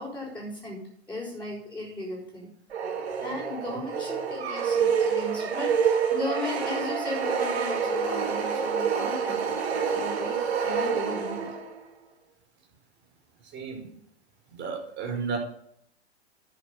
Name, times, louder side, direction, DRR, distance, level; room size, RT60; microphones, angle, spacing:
voice 1, 0.0-2.5 3.2-11.6, left 2 dB, 5° left, -6 dB, 5.9 m, -36 dB
sound 1, 2.7-11.8, right 6 dB, 70° right, 2.5 m, -27 dB
voice 2, 13.5-13.9 14.5-15.4, right 5 dB, 35° right, 1 dB, 5.4 m, -33 dB
10.5 x 8.1 x 6.8 m, 0.65 s
figure-of-eight pair, 95°, 33 cm